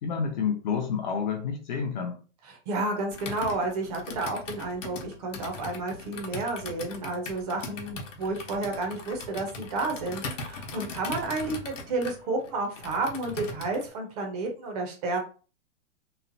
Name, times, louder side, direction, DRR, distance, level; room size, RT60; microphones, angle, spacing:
voice 1, 0.0-2.2, left 6 dB, 40° left, 4 dB, 0.6 m, -29 dB
voice 2, 2.5-15.2, right 2 dB, 30° right, 2 dB, 0.7 m, -31 dB
Computer keyboard, 3.1-13.9, left 3 dB, 80° left, 0.9 m, -40 dB
3.1 x 2.0 x 2.5 m, 0.37 s
hypercardioid pair, 145°, 37 cm